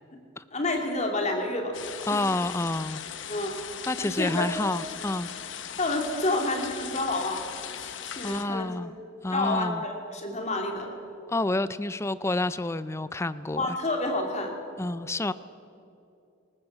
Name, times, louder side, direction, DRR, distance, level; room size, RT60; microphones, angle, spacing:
voice 1, 0.5-1.7 2.1-2.2 3.3-3.6 4.0-4.5 5.8-7.5 7.8-8.7 9.3-10.9 13.6-14.5, left 2 dB, 35° left, 2 dB, 2.8 m, -29 dB
sound 1, 1.7-8.5, left 8 dB, 65° left, 1.0 m, -39 dB
voice 2, 2.1-3.0 3.9-5.3 8.2-8.9 9.2-9.8 11.3-13.8 14.8-15.3, left 2 dB, 15° left, 15 dB, 0.4 m, -29 dB
20.0 x 19.0 x 7.4 m, 2.6 s
head